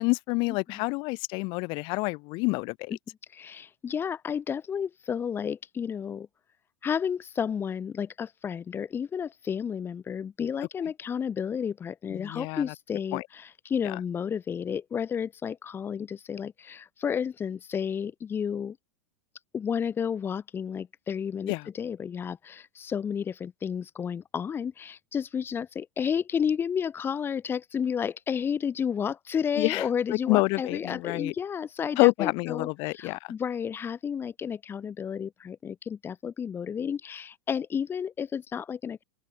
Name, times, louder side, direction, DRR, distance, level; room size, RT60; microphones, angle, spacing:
voice 1, 0.0-3.0 12.1-12.6 13.1-13.2 13.8-14.0 21.5-21.7 29.6-29.9 30.1-31.3 32.0-33.3, left 28 dB, 50° left, 0.7 m, -27 dB
voice 2, 3.3-6.3 6.8-18.8 19.5-39.0, left 7 dB, 20° left, 1.1 m, -31 dB
open air
supercardioid pair, 130°, 11 cm